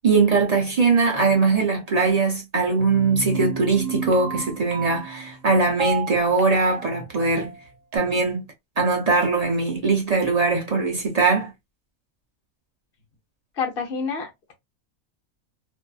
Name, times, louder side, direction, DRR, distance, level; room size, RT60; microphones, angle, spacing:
voice 1, 0.0-7.6 7.9-8.5 8.8-11.5, right 4 dB, 45° right, 0.5 m, -21 dB
sound 1, 2.8-8.0, right 8 dB, 70° right, 0.9 m, -33 dB
voice 2, 13.6-14.5, left 5 dB, 50° left, 0.9 m, -28 dB
2.6 x 2.5 x 2.3 m
omnidirectional pair, 1.4 m